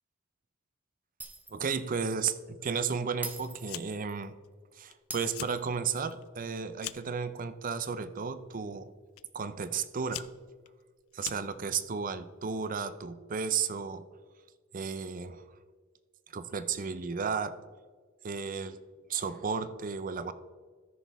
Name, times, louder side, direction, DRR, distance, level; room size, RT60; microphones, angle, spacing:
Shatter, 1.2-1.8 2.1-2.2 3.2-4.2 5.1-6.1, right 3 dB, 10° right, 0.7 m, -43 dB
voice 1, 1.5-4.3 4.7-8.9 9.3-10.3 11.1-14.1 14.7-15.4 16.3-17.6 18.2-18.8 19.1-20.3, right 6 dB, 40° right, 13 dB, 0.5 m, -33 dB
Fire, 3.6-4.1 4.4-4.9 5.2-5.6 6.0-7.2 8.0-8.3 9.2-9.3 9.8-11.8, left 14 dB, 85° left, 0.4 m, -43 dB
14.0 x 6.3 x 3.4 m, 1.5 s
head